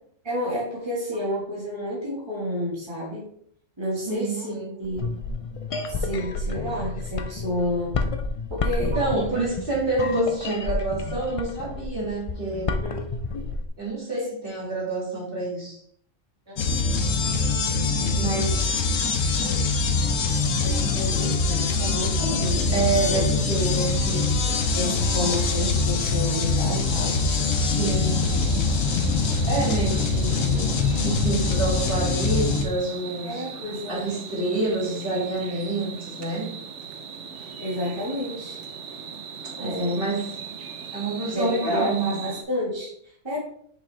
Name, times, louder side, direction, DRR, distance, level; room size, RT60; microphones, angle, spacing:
voice 1, 0.2-3.2 3.8-5.1 5.9-8.0 8.5-9.0 9.3-9.4 12.8-13.0 16.5-16.6 19.4-19.7 20.0-20.2 20.6-23.3 24.7-27.2 30.2-30.3 33.2-34.0 37.6-38.6 39.6-40.2 41.3-43.4, left 1 dB, 20° right, -5 dB, 1.7 m, -30 dB
voice 2, 4.1-4.8 8.8-12.7 13.8-15.8 18.1-18.8 22.7-24.3 27.6-28.2 29.4-30.7 31.0-33.4 33.9-36.5 39.6-40.3 40.9-42.2, right 2 dB, 45° right, -6 dB, 2.6 m, -27 dB
sound 1, 4.8-13.7, left 3 dB, 55° left, 0.4 m, -30 dB
sound 2, 16.6-32.6, left 4 dB, 90° left, 1.2 m, -23 dB
sound 3, 23.3-42.4, right 6 dB, 75° right, 1.0 m, -39 dB
6.0 x 5.3 x 3.3 m, 0.65 s
omnidirectional pair, 1.3 m